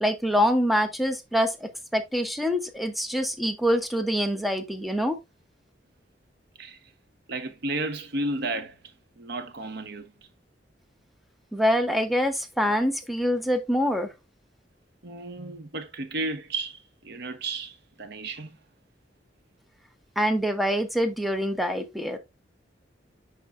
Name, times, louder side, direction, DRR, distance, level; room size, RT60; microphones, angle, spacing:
voice 1, 0.0-5.2 11.5-14.1 20.2-22.2, equal, ahead, 0.7 m, -25 dB
voice 2, 7.3-8.8 9.2-10.1 12.7-12.8 15.0-18.6, right 2 dB, 60° right, 0.8 m, -33 dB
10.5 x 3.8 x 2.4 m
head